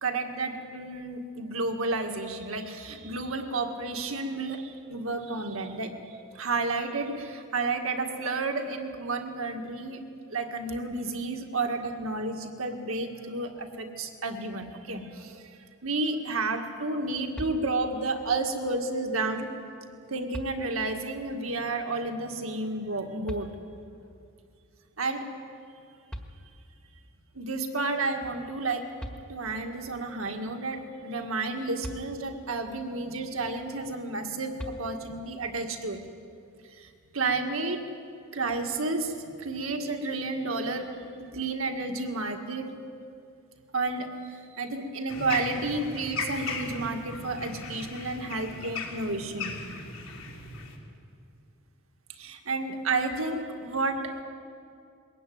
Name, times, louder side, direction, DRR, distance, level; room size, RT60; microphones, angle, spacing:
voice 1, 0.0-6.0 6.3-10.0 10.3-15.5 15.8-19.5 20.1-23.5 25.0-25.3 27.4-28.9 29.3-36.0 36.7-37.8 38.3-42.7 43.7-49.6 52.2-54.1, right 3 dB, 70° right, 5 dB, 1.9 m, -31 dB
sound 1, 17.3-18.1 19.6-19.7 20.3-21.1 23.3-24.0 25.8-25.9 26.1-26.9 28.6-28.7 29.0-29.7 31.8-32.6 34.6-35.3, equal, 5° left, 1.6 m, -42 dB
sound 2, 45.1-50.8, left 3 dB, 65° left, 3.4 m, -37 dB
21.5 x 16.0 x 9.4 m, 2.4 s
head